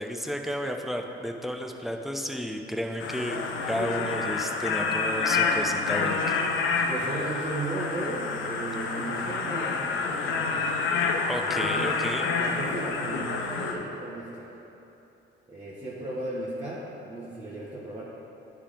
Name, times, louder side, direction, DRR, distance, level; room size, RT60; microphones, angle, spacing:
voice 1, 0.0-3.4 3.7-6.4 11.3-12.3, equal, ahead, 3 dB, 0.6 m, -32 dB
sound 1, 3.0-13.7, left 4 dB, 80° left, 0.7 m, -28 dB
voice 2, 6.9-10.6 11.4-12.0 12.4-14.5 15.5-18.0, right 2 dB, 20° right, -9 dB, 1.4 m, -35 dB
10.0 x 3.6 x 5.0 m, 2.9 s
cardioid pair, 90°, 20 cm